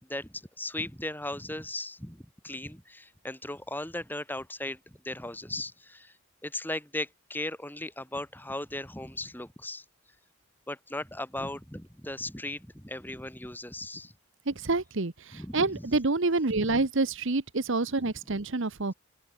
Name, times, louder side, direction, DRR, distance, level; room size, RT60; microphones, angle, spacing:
voice 1, 0.0-6.2 6.4-9.8 10.7-14.1 15.3-16.0 16.6-16.9, left 1 dB, 10° left, 4.5 m, -37 dB
voice 2, 14.5-18.9, right 3 dB, 55° right, 1.1 m, -28 dB
open air
head